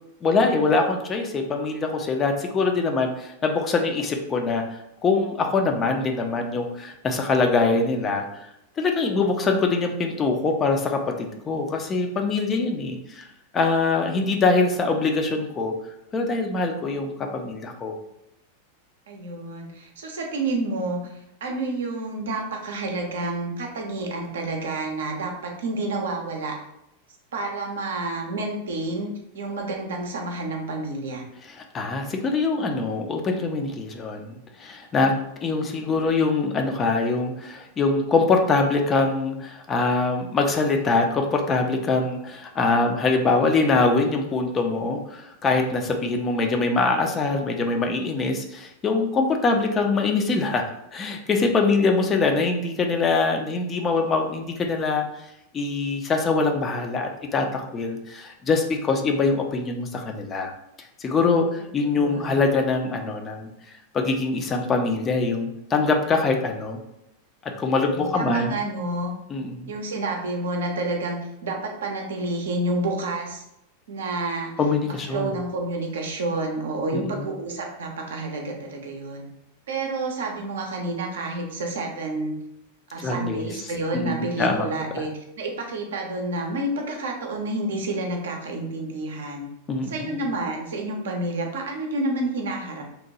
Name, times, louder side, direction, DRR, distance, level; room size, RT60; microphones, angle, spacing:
voice 1, 0.2-13.3 13.5-15.7 16.1-18.0 31.5-35.1 35.4-50.6 50.9-55.0 55.5-60.5 61.0-63.5 63.9-66.8 67.6-68.6 69.3-69.7 74.6-75.3 76.9-77.3 83.0-83.5 83.9-84.7 89.7-90.2, left 3 dB, 25° left, 3 dB, 0.4 m, -23 dB
voice 2, 19.1-26.6 27.3-31.2 61.8-62.4 67.9-69.1 69.7-73.4 73.9-74.5 74.9-79.2 79.7-82.4 82.9-89.5 89.9-92.8, right 2 dB, 60° right, 2 dB, 0.5 m, -29 dB
2.8 x 2.1 x 2.7 m, 0.82 s
figure-of-eight pair, 90°, 0 cm